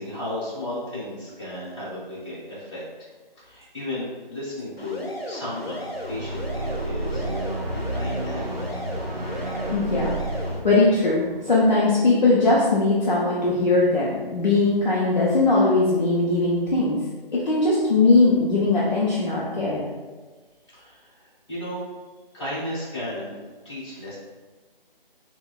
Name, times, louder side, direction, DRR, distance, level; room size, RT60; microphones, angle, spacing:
voice 1, 0.0-2.8 3.4-7.3 7.7-8.8 20.7-21.9 22.3-23.4 23.6-24.2, left 1 dB, 30° left, -10 dB, 1.4 m, -34 dB
sound 1, 4.8-10.6, left 1 dB, 85° left, 0.8 m, -35 dB
sound 2, 5.9-12.3, right 2 dB, 45° right, 0.5 m, -31 dB
voice 2, 9.7-10.2 10.6-17.0 17.3-19.8, left 3 dB, 50° left, -6 dB, 0.6 m, -20 dB
4.5 x 2.2 x 2.2 m, 1.3 s
figure-of-eight pair, 170°, 29 cm